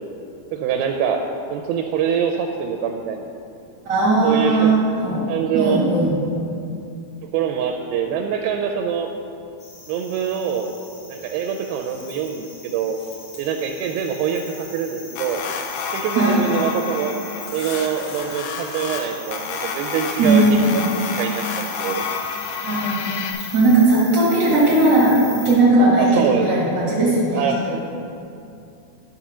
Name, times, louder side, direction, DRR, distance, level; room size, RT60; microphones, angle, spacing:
voice 1, 0.5-1.2 1.5-3.3 4.2-4.8 5.3-5.9 7.3-9.1 9.9-10.7 11.1-13.0 13.4-15.4 15.9-17.1 17.5-20.8 21.2-22.1 26.0-26.4 27.3-27.6, right 8 dB, 80° right, 3 dB, 2.3 m, -24 dB
voice 2, 3.8-5.3 5.5-6.2 16.1-16.4 20.2-20.8 22.6-23.1 23.5-27.7, right 2 dB, 60° right, -6 dB, 1.1 m, -17 dB
sound 1, 9.6-25.6, left 3 dB, 50° left, 2.1 m, -39 dB
sound 2, 15.2-23.3, left 5 dB, 85° left, 1.8 m, -30 dB
12.0 x 4.2 x 6.1 m, 2.6 s
omnidirectional pair, 4.5 m